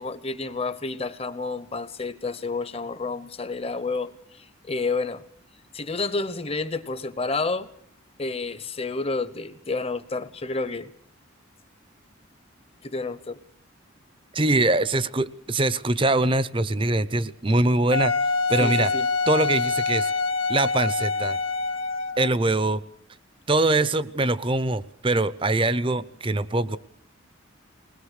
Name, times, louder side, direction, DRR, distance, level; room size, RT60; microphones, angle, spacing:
voice 1, 0.0-5.2 5.7-7.7 8.2-10.9 12.8-13.4 18.6-19.1, left 3 dB, 30° left, 13 dB, 1.0 m, -30 dB
voice 2, 14.3-18.1 18.5-18.9 19.3-20.1 20.5-21.4 22.2-22.8 23.5-26.8, right 2 dB, 25° right, 16 dB, 0.7 m, -23 dB
Wind instrument woodwind instrument, 17.9-22.4, left 4 dB, 70° left, 1.4 m, -25 dB
21.0 x 20.0 x 6.6 m, 0.68 s
head